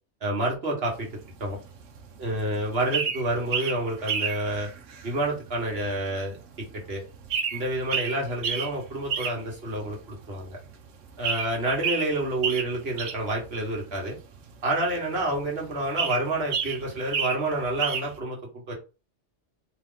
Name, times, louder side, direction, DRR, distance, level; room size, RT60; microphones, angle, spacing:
voice 1, 0.2-1.1 1.4-1.6 2.2-4.7 5.0-7.0 7.5-10.6 11.2-14.2 14.6-18.4 18.7-18.8, right 1 dB, 55° right, -1 dB, 1.6 m, -28 dB
sound 1, 0.8-18.2, right 6 dB, 80° right, 1.1 m, -33 dB
4.6 x 3.0 x 3.8 m, 0.32 s
omnidirectional pair, 1.3 m